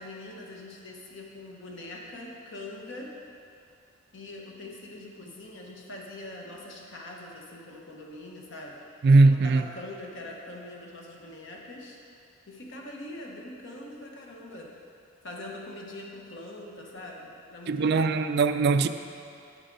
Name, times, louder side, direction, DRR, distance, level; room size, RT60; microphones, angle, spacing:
voice 1, 0.0-3.1 4.1-8.8 9.3-12.0 12.5-14.8 15.2-18.2, left 1 dB, 60° left, -1 dB, 1.1 m, -43 dB
voice 2, 9.0-9.6 17.7-18.9, right 3 dB, 55° right, 10 dB, 0.3 m, -20 dB
8.9 x 8.0 x 4.0 m, 2.6 s
head